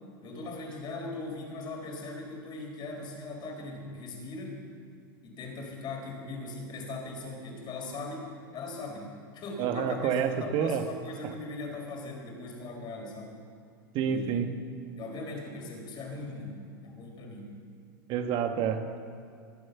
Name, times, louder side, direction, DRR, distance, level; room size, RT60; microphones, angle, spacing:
voice 1, 0.2-4.6 5.2-10.1 10.4-13.4 14.0-14.4 15.0-17.6, left 2 dB, 40° left, 0 dB, 4.3 m, -40 dB
voice 2, 9.6-10.8 11.2-11.3 13.9-14.5 18.1-19.0, right 7 dB, 45° right, 7 dB, 1.4 m, -28 dB
19.0 x 7.8 x 7.1 m, 2.5 s
hypercardioid pair, 95°, 12 cm